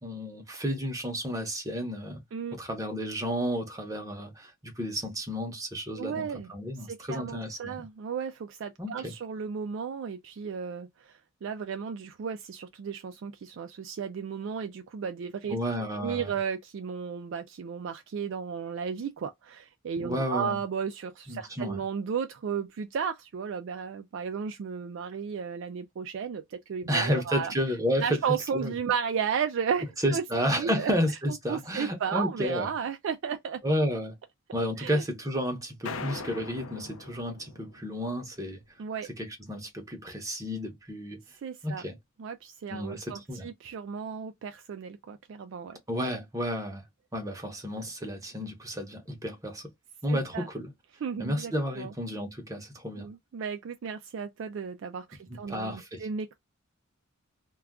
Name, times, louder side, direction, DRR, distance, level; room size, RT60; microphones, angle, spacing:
voice 1, 0.0-2.2 2.5-7.8 8.8-9.1 15.5-16.3 20.0-20.6 21.3-21.8 26.9-28.2 28.5-28.7 30.0-32.7 33.6-34.2 34.5-38.6 39.2-41.2 41.6-42.0 42.7-43.5 45.9-46.8 47.1-49.7 50.0-50.7 51.2-53.1 55.5-56.1, equal, 15° right, 0.8 m, -31 dB
voice 2, 5.9-6.5 6.9-27.5 28.0-30.2 30.5-30.9 31.5-33.6 34.8-35.0 38.8-39.1 41.4-41.8 42.2-45.8 50.1-50.5 51.0-51.9 53.0-56.3, right 6 dB, 60° right, 0.3 m, -34 dB
sound 1, 35.8-38.3, left 3 dB, 80° left, 0.5 m, -41 dB
2.3 x 2.3 x 3.5 m
head